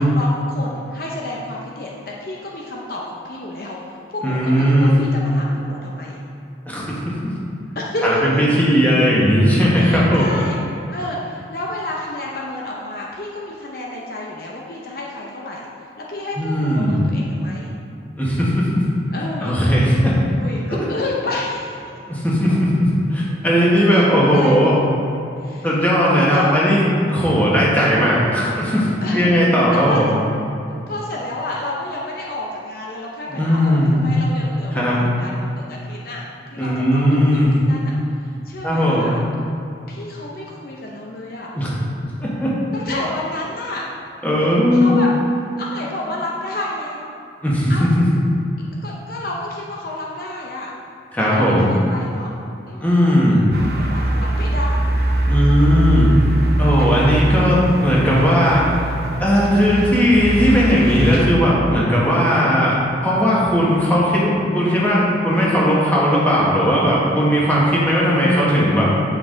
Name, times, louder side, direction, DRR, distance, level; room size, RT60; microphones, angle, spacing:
voice 1, 0.0-6.2 7.7-8.4 9.8-10.6 10.9-15.7 16.0-17.7 19.1-19.5 20.3-21.9 23.6-24.6 25.3-25.7 26.3-26.6 29.0-29.3 29.7-30.0 30.9-36.2 36.5-37.9 38.2-39.2 39.9-41.5 42.7-43.9 44.7-45.1 45.6-47.0 47.7-47.8 48.6-50.7 51.2-52.3 52.7-52.9 53.6-55.0 56.8-57.1, left 2 dB, 55° left, -3 dB, 0.8 m, -30 dB
voice 2, 4.2-4.9 6.7-7.0 8.0-10.2 16.4-17.1 18.2-18.8 19.4-20.1 20.7-20.8 22.1-24.8 25.6-26.8 27.1-28.9 29.1-30.1 33.3-34.0 34.7-35.1 36.6-37.5 38.6-39.1 41.5-41.7 42.2-42.5 44.2-45.0 47.4-48.0 51.1-51.7 52.8-53.4 55.3-56.1 56.6-58.7 59.2-62.7 63.0-69.0, equal, 10° left, -7 dB, 1.6 m, -17 dB
sound 1, 53.5-61.3, right 1 dB, 55° right, 0.7 m, -21 dB
9.0 x 5.7 x 3.9 m, 2.8 s
head